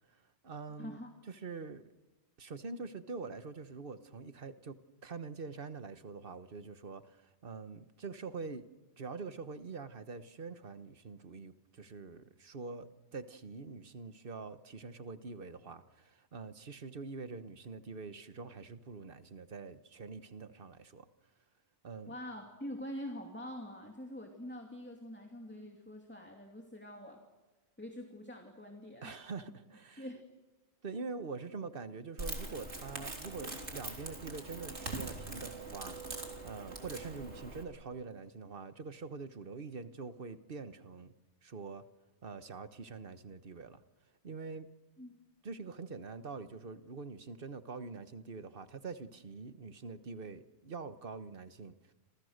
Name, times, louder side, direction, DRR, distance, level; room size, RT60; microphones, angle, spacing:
voice 1, 0.1-1.0 1.3-1.9 2.4-8.7 9.0-21.1 21.8-22.1 29.0-30.0 30.8-36.0 36.4-41.1 41.4-41.8 42.2-43.8 44.2-44.7 45.4-51.9, right 4 dB, 55° right, 1.4 m, -45 dB
voice 2, 0.8-1.1 22.1-27.2 27.8-29.2 29.5-29.6 30.0-30.2 45.0-45.1, equal, 10° left, 2.6 m, -45 dB
Crackle, 32.2-37.6, right 2 dB, 75° right, 4.1 m, -43 dB
29.0 x 26.5 x 6.6 m
omnidirectional pair, 1.2 m